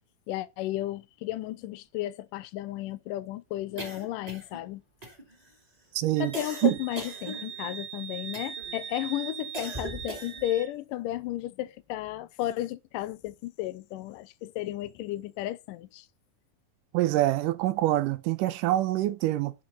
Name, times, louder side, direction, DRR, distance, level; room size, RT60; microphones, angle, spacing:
voice 1, 0.3-4.8 6.2-16.1, left 14 dB, 80° left, 2.2 m, -33 dB
sound 1, 3.8-4.7 5.0-5.5 6.3-7.8 8.3-8.8 9.5-10.5, right 2 dB, 10° right, 2.3 m, -40 dB
voice 2, 6.0-6.3 6.6-6.8 16.9-19.5, right 15 dB, 75° right, 2.1 m, -25 dB
Wind instrument woodwind instrument, 6.2-10.7, right 8 dB, 55° right, 2.0 m, -41 dB
12.5 x 5.2 x 4.0 m
omnidirectional pair, 4.1 m